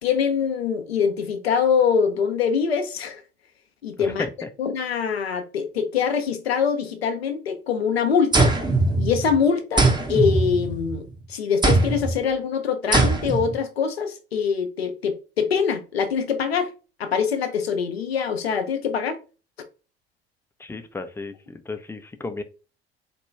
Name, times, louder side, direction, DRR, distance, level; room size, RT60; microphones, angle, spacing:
voice 1, 0.0-3.2 3.8-4.3 4.6-8.5 9.0-16.7 17.0-19.2, left 6 dB, 85° left, 0.6 m, -24 dB
sound 1, 8.3-9.4 9.8-11.0 11.6-12.2 12.9-13.5, right 2 dB, 15° right, 0.8 m, -21 dB
voice 2, 20.6-22.4, left 3 dB, 10° left, 0.4 m, -34 dB
4.1 x 2.2 x 3.1 m
figure-of-eight pair, 65°, 30 cm